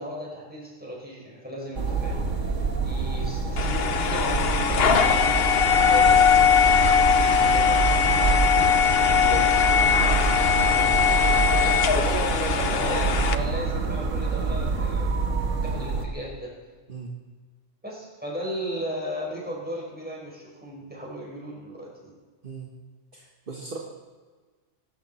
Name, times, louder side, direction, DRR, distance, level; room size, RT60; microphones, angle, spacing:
voice 1, 0.0-2.5 2.8-8.7 11.6-15.1 15.6-16.6 17.8-22.2, equal, 5° right, -3 dB, 5.5 m, -36 dB
sound 1, 1.7-16.1, right 4 dB, 90° right, 1.9 m, -27 dB
sound 2, 3.6-13.4, left 7 dB, 55° left, 1.1 m, -20 dB
voice 2, 9.2-9.6 10.4-11.3 16.9-17.1 22.4-22.7 23.1-23.8, right 4 dB, 45° right, -1 dB, 1.7 m, -38 dB
25.0 x 12.5 x 4.3 m, 1.4 s
omnidirectional pair, 1.3 m